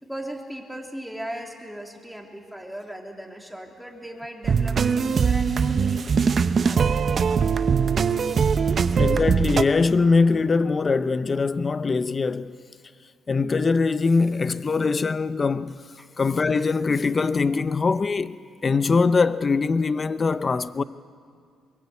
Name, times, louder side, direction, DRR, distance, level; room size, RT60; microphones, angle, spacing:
voice 1, 0.0-7.0 16.0-16.1, right 1 dB, ahead, 3.2 m, -38 dB
sound 1, 4.4-9.6, right 6 dB, 45° right, 0.8 m, -21 dB
voice 2, 9.0-12.6 13.3-15.8 16.2-20.8, left 4 dB, 35° left, 0.6 m, -22 dB
22.5 x 22.0 x 8.4 m
cardioid pair, 90°, 0 cm